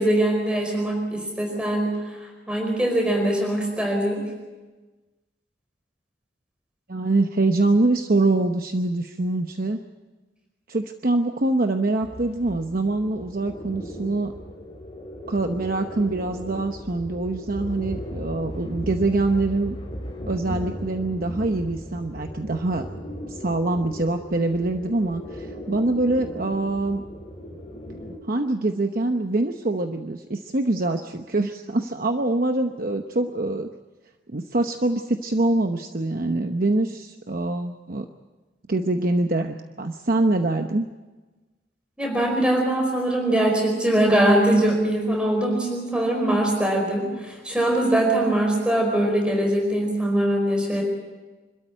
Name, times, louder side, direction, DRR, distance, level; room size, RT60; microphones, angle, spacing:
voice 1, 0.0-2.0 2.5-4.2 42.0-50.8, right 1 dB, 5° right, 1 dB, 4.7 m, -22 dB
voice 2, 6.9-9.8 10.7-14.3 15.3-19.8 20.3-22.9 23.3-27.0 28.2-33.7 34.3-38.1 38.7-40.9, right 2 dB, 50° right, 5 dB, 0.9 m, -24 dB
sound 1, 12.0-28.2, equal, 30° left, 3.3 m, -37 dB
26.5 x 13.0 x 9.0 m, 1.2 s
head